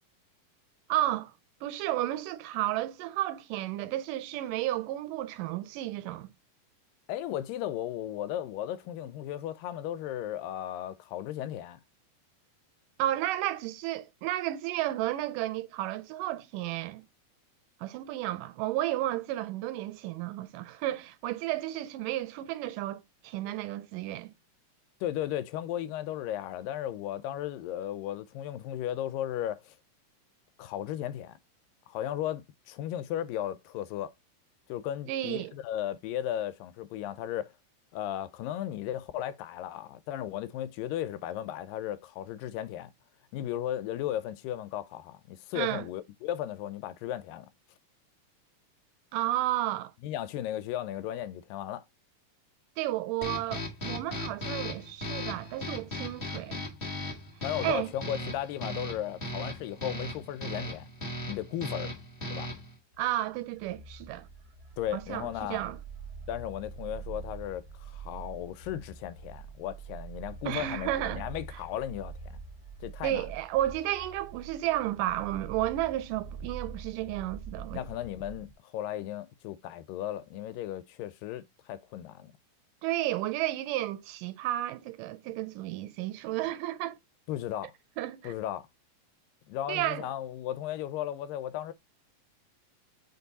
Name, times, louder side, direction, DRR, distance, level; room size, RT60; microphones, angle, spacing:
voice 1, 0.9-1.3 1.6-6.3 13.0-17.0 17.8-24.3 35.1-35.5 45.6-45.9 49.1-49.9 52.8-56.6 57.6-57.9 63.0-64.3 64.9-65.8 70.5-71.3 73.0-77.8 82.8-87.0 88.0-88.4 89.7-90.1, right 14 dB, 80° right, 2.0 m, -32 dB
voice 2, 7.1-11.8 25.0-29.8 30.6-31.4 31.9-34.1 34.7-37.5 37.9-42.9 43.3-47.5 50.0-51.8 57.4-60.9 61.3-61.9 62.3-62.5 64.8-65.6 66.3-72.1 72.8-73.3 77.7-82.3 87.3-87.7 88.2-88.7 89.5-91.7, left 11 dB, 85° left, 2.3 m, -35 dB
sound 1, 53.2-62.8, left 1 dB, 35° left, 0.8 m, -37 dB
sound 2, 62.9-78.5, right 5 dB, 35° right, 1.2 m, -45 dB
5.3 x 4.5 x 3.9 m
omnidirectional pair, 3.9 m